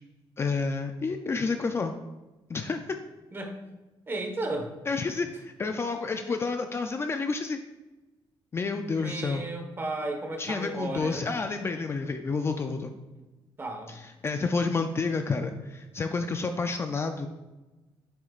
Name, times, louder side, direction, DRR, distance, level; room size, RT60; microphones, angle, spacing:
voice 1, 0.4-1.9 2.5-2.8 4.9-7.6 8.5-9.5 10.4-12.9 14.2-17.3, left 4 dB, 30° left, 6 dB, 0.4 m, -29 dB
voice 2, 3.3-3.6 4.1-4.7 8.9-11.3 13.1-13.2 13.6-14.0, right 2 dB, 25° right, 3 dB, 1.2 m, -34 dB
7.9 x 7.5 x 2.4 m, 1.1 s
cardioid pair, 140°, 9 cm